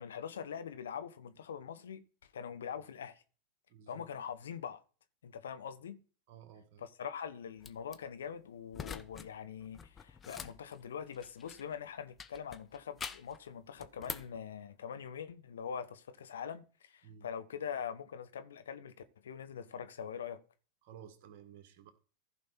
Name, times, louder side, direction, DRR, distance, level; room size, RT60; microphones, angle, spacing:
voice 1, 0.0-3.2 3.9-4.8 5.2-6.0 6.8-20.4, left 7 dB, 75° left, 0.9 m, -43 dB
voice 2, 3.7-4.0 6.3-6.8 17.0-17.3 20.8-21.9, right 8 dB, 55° right, 1.9 m, -54 dB
sound 1, 7.6-8.0 8.7-9.3 9.6-11.7 12.2-13.4 13.8-14.4, left 6 dB, 25° left, 0.8 m, -45 dB
15.0 x 5.3 x 4.3 m
figure-of-eight pair, 90°, 0 cm